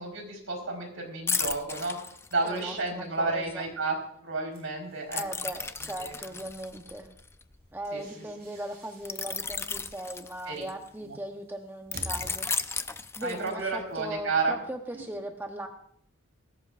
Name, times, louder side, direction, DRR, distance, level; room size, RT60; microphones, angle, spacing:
voice 1, 0.0-2.0 2.3-4.0 4.2-5.2 6.0-6.2 7.9-8.0 10.5-10.7 11.1-11.2 13.2-14.5 14.9-15.0, right 3 dB, 75° right, 1 dB, 4.4 m, -31 dB
sound 1, 1.3-2.8 5.1-7.9 9.1-10.9 11.9-13.8 14.2-14.4, left 5 dB, 10° left, 0.4 m, -34 dB
voice 2, 2.4-3.7 5.1-7.1 7.7-12.5 12.8-15.7, right 1 dB, 10° right, 4 dB, 0.9 m, -39 dB
sound 2, 4.5-5.6 7.5-12.9, right 1 dB, 50° right, 6.8 m, -50 dB
19.5 x 16.5 x 2.5 m, 0.69 s
head